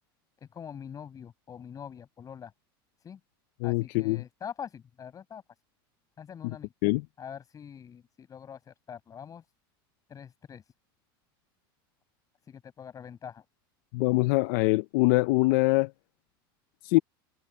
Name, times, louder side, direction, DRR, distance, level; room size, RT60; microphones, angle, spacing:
voice 1, 0.4-2.5 3.0-3.2 3.6-5.4 6.2-6.7 7.2-9.4 10.1-10.6 12.5-13.4, left 8 dB, 30° left, 7.4 m, -44 dB
voice 2, 3.6-4.2 6.4-6.5 6.8-7.0 13.9-15.9 16.8-17.0, left 23 dB, 65° left, 0.7 m, -24 dB
supercardioid pair, 115°, 12 cm